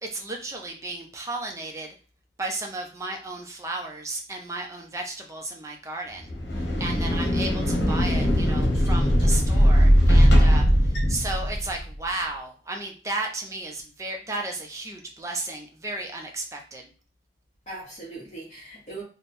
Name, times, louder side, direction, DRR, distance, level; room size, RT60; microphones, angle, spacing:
voice 1, 0.0-1.9 2.4-16.9, right 2 dB, 15° right, 1 dB, 0.7 m, -34 dB
sound 1, 6.2-11.9, equal, 80° left, 1.0 m, -20 dB
voice 2, 7.0-7.5 17.6-19.0, right 2 dB, 35° left, -8 dB, 1.4 m, -40 dB
3.4 x 2.3 x 4.2 m, 0.38 s
head